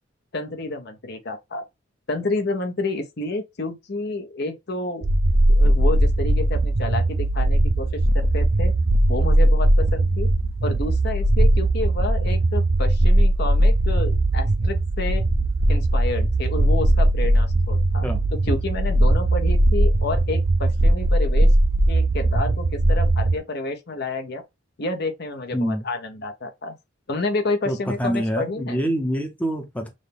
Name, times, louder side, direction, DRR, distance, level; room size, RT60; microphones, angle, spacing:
voice 1, 0.3-1.6 2.1-5.1 5.5-8.7 9.1-10.3 10.6-15.2 15.7-18.1 18.4-21.5 21.9-24.4 24.8-26.7 27.1-28.8, left 2 dB, 50° left, 0.7 m, -29 dB
sound 1, 5.0-23.4, right 1 dB, 45° right, 0.5 m, -19 dB
voice 2, 25.5-25.8 27.7-29.9, equal, 5° left, 0.7 m, -26 dB
6.2 x 2.2 x 3.4 m
head